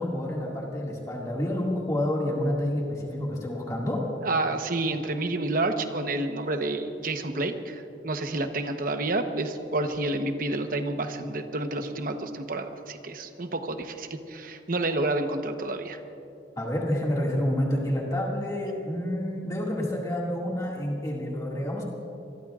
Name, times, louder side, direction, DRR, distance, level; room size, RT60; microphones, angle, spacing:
voice 1, 0.0-4.1 16.6-21.8, left 1 dB, 20° left, -3 dB, 2.1 m, -28 dB
voice 2, 4.2-16.0, right 2 dB, 50° right, 6 dB, 1.0 m, -29 dB
25.5 x 22.0 x 2.5 m, 2.8 s
head